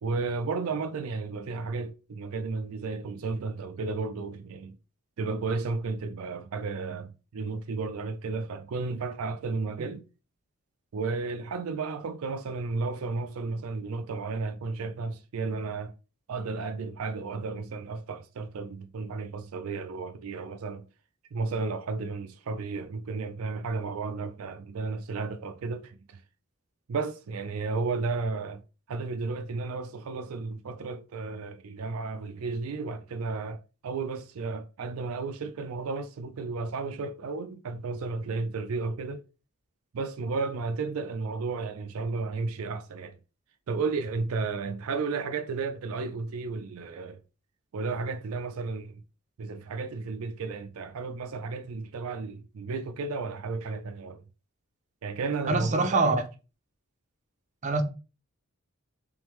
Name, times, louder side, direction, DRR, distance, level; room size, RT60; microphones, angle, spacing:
voice 1, 0.0-4.7 5.2-10.0 10.9-15.9 16.3-20.9 21.3-26.2 26.9-28.6 28.9-39.2 39.9-43.2 43.7-47.2 47.7-49.0 49.4-54.2 55.0-56.2, right 4 dB, 80° right, 0.4 m, -33 dB
voice 2, 55.5-56.2 57.6-57.8, right 3 dB, 35° right, 0.6 m, -24 dB
3.5 x 3.4 x 3.0 m
head